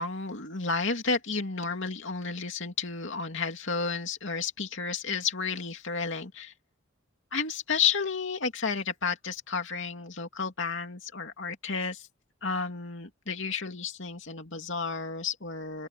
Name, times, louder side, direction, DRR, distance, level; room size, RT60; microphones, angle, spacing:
voice 1, 0.0-6.5 7.3-12.1 12.4-15.9, left 5 dB, 60° left, 2.8 m, -32 dB
open air
head